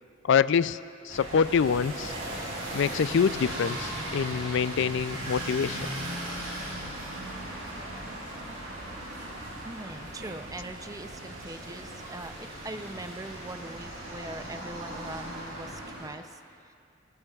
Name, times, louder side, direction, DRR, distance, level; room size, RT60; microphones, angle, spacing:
voice 1, 0.2-0.8 1.0-2.1 2.7-5.8, left 6 dB, 65° left, 16 dB, 0.4 m, -25 dB
sound 1, 1.1-16.1, right 1 dB, 80° right, 4.8 m, -38 dB
sound 2, 4.6-12.3, right 2 dB, 45° right, 1.1 m, -50 dB
voice 2, 9.6-16.7, right 2 dB, 20° right, 8 dB, 0.5 m, -42 dB
23.0 x 20.0 x 2.4 m, 2.3 s
head